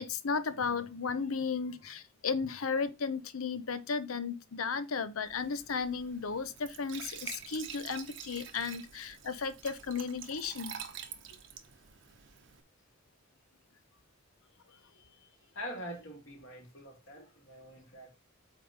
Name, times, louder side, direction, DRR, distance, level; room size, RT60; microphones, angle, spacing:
voice 1, 0.0-10.7, left 5 dB, 85° left, 0.8 m, -34 dB
Glass / Trickle dribble / Fill (with liquid), 5.3-12.6, right 8 dB, 60° right, 0.9 m, -47 dB
voice 2, 14.7-18.1, equal, 65° left, 3.3 m, -45 dB
8.4 x 3.2 x 5.3 m
head